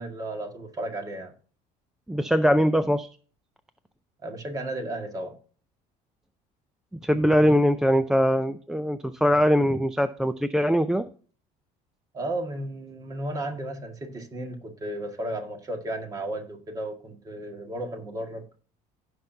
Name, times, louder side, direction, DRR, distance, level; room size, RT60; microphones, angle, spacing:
voice 1, 0.0-1.3 4.2-5.3 12.1-18.4, right 1 dB, 25° right, 1.7 m, -34 dB
voice 2, 2.1-3.1 7.0-11.1, equal, 5° right, 0.4 m, -22 dB
16.0 x 5.9 x 2.7 m
cardioid pair, 160°, 15 cm